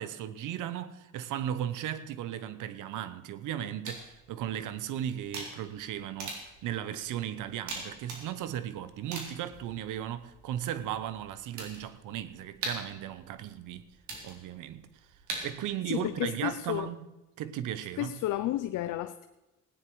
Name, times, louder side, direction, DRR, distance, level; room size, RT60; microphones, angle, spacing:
voice 1, 0.0-13.8 14.2-14.8 15.4-17.0 17.4-18.2, right 10 dB, 90° right, 1.0 m, -36 dB
sound 1, 3.9-15.9, right 3 dB, 70° right, 3.9 m, -44 dB
voice 2, 15.9-16.9 18.0-19.3, left 14 dB, 85° left, 0.6 m, -32 dB
17.0 x 10.0 x 4.7 m
cardioid pair, 90°, 30 cm